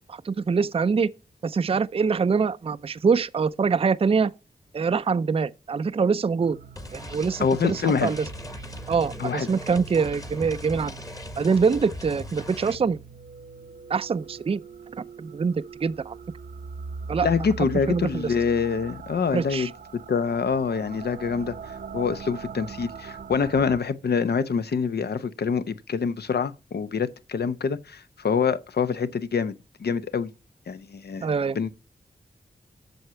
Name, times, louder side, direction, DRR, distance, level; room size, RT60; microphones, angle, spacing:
voice 1, 0.1-1.1 1.4-4.3 4.7-6.6 6.9-8.2 8.9-10.9 11.4-13.0 13.9-14.6 15.2-15.5 15.8-16.1 17.1-17.3 17.9-18.3 19.3-19.7 31.2-31.6, right 5 dB, 35° right, 0.4 m, -24 dB
sound 1, 6.4-23.8, right 5 dB, 70° right, 0.7 m, -41 dB
sound 2, 6.8-12.8, left 1 dB, 20° left, 1.1 m, -39 dB
voice 2, 7.4-8.1 9.2-9.5 17.2-29.5 29.8-30.3 30.7-31.3 31.5-31.7, left 6 dB, 80° left, 0.7 m, -26 dB
7.8 x 6.4 x 5.7 m
wide cardioid pair, 75°, 17 cm